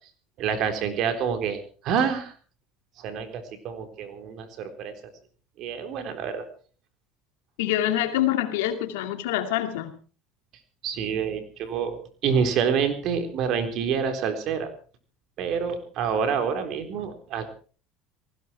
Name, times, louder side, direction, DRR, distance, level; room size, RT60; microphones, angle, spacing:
voice 1, 0.4-2.3 3.0-5.1 5.6-6.5 10.8-14.7 15.4-17.5, right 7 dB, 60° right, 8 dB, 3.9 m, -27 dB
voice 2, 7.6-9.9, left 12 dB, 85° left, 7 dB, 2.4 m, -25 dB
19.5 x 16.5 x 4.5 m, 0.40 s
supercardioid pair, 95°, 0 cm